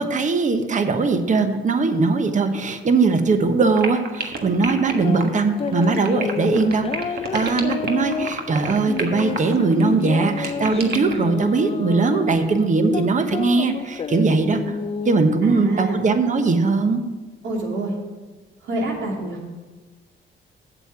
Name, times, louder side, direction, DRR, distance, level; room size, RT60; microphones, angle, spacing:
voice 1, 0.0-6.9 7.3-14.8 15.0-17.0, right 4 dB, 40° right, 7 dB, 1.1 m, -20 dB
sound 1, 3.7-11.3, right 4 dB, 55° right, 1.4 m, -30 dB
sound 2, 4.8-15.2, left 6 dB, 30° left, 0.4 m, -30 dB
voice 2, 15.4-16.1 17.4-17.9 18.6-19.4, right 2 dB, 70° right, -2 dB, 2.7 m, -27 dB
8.1 x 7.6 x 5.9 m, 1.3 s
cardioid pair, 90°, 20 cm